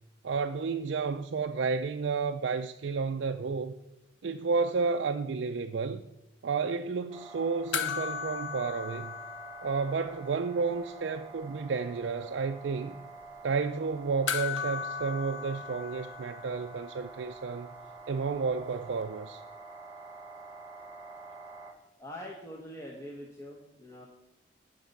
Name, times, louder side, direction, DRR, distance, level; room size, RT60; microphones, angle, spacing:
voice 1, 0.2-3.8 4.2-6.0 6.4-9.1 9.6-13.0 13.4-17.7 18.1-19.4, right 4 dB, 65° right, 0.4 m, -31 dB
sound 1, 7.1-21.7, right 3 dB, 25° right, 1.3 m, -48 dB
sound 2, 7.7-10.4 10.6-10.7 14.3-16.9 19.0-19.1, left 7 dB, 75° left, 0.8 m, -36 dB
voice 2, 22.0-24.1, equal, 15° left, 1.0 m, -44 dB
9.3 x 5.4 x 8.1 m
head